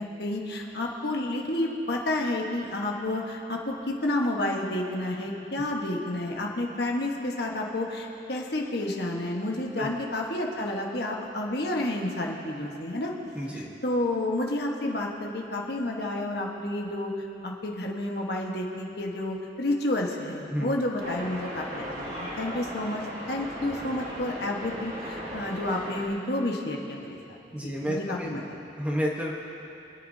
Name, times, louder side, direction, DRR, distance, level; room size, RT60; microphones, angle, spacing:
voice 1, 0.0-13.1 13.5-17.1 17.4-23.0 23.3-28.6, left 1 dB, 55° left, -1 dB, 1.4 m, -30 dB
voice 2, 13.3-13.7 20.5-20.7 27.5-28.4 28.8-29.3, equal, 5° right, -2 dB, 1.1 m, -30 dB
sound 1, 21.0-26.1, equal, 45° right, 2.5 m, -37 dB
25.5 x 10.5 x 2.8 m, 2.9 s
head